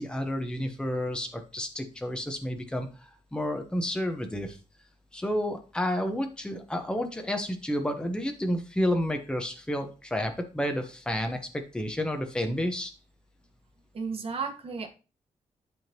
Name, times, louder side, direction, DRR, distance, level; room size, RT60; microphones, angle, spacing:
voice 1, 0.0-4.6 5.1-12.9, equal, 5° left, 4 dB, 1.0 m, -30 dB
voice 2, 13.9-14.9, right 5 dB, 50° right, 2 dB, 1.4 m, -33 dB
11.0 x 3.6 x 2.9 m, 0.33 s
cardioid pair, 90°, 13 cm